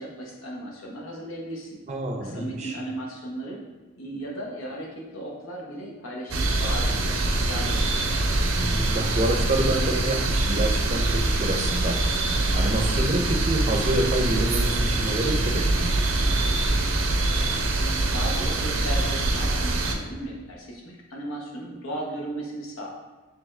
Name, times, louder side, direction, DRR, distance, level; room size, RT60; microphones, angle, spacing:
voice 1, 0.0-1.8 2.2-3.6 4.0-8.2 17.8-22.9, right 1 dB, 85° left, -2 dB, 0.9 m, -36 dB
voice 2, 1.9-2.8 8.5-16.0, right 1 dB, 35° right, 2 dB, 0.4 m, -28 dB
sound 1, 6.3-19.9, right 2 dB, 85° right, 0.5 m, -24 dB
3.5 x 3.3 x 3.2 m, 1.3 s
head